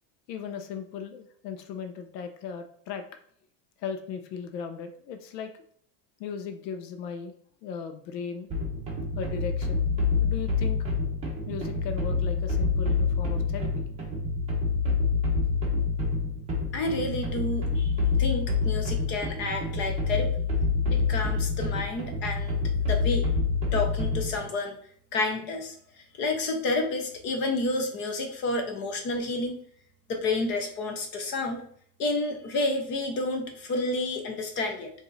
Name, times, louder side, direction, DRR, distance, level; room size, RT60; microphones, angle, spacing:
voice 1, 0.3-3.0 3.8-5.5 6.2-7.3 7.6-8.5 9.2-9.9 10.2-10.8 11.5-13.9, left 6 dB, 80° left, 7 dB, 0.8 m, -37 dB
sound 1, 8.5-24.4, left 4 dB, 15° right, 0.9 m, -27 dB
voice 2, 16.7-17.9 18.2-20.3 20.9-22.6 22.9-23.3 23.7-24.8 25.1-29.6 30.1-31.6 32.0-34.9, left 2 dB, 25° left, 4 dB, 0.5 m, -30 dB
4.8 x 2.7 x 3.9 m, 0.62 s
supercardioid pair, 165°, 49 cm